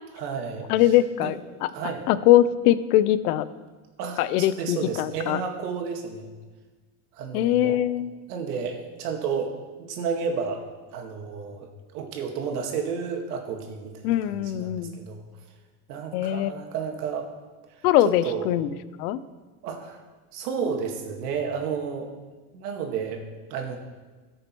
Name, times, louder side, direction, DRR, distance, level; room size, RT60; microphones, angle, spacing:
voice 1, 0.2-0.7 1.2-1.3 1.7-2.0 4.0-6.3 7.1-7.8 8.3-10.6 10.9-15.2 15.9-17.3 18.0-18.5 19.6-20.0 20.3-22.1 22.5-23.2 23.5-23.8, right 6 dB, 80° right, 3 dB, 2.1 m, -31 dB
voice 2, 0.7-1.7 2.1-3.5 4.2-5.4 7.3-8.1 14.0-15.0 16.1-16.5 17.8-18.7 19.0-19.2, left 13 dB, 75° left, 15 dB, 0.7 m, -22 dB
17.5 x 6.6 x 4.5 m, 1.3 s
cardioid pair, 180°, 45 cm